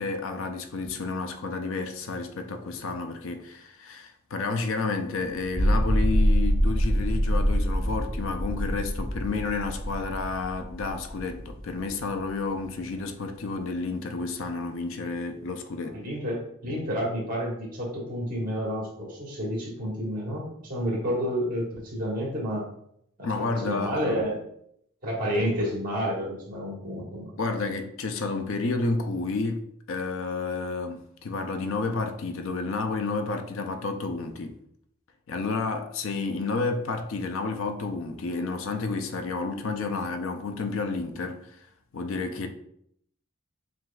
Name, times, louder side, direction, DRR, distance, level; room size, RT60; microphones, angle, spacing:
voice 1, 0.0-16.0 16.7-16.8 23.2-24.2 27.4-34.6 35.3-41.6 41.9-42.5, left 3 dB, 65° left, 0.4 m, -31 dB
sound 1, 5.4-11.9, equal, 35° left, 0.8 m, -25 dB
voice 2, 15.9-22.6 23.2-24.4 25.0-27.3, equal, 40° right, 1.5 m, -30 dB
7.4 x 2.5 x 2.3 m
head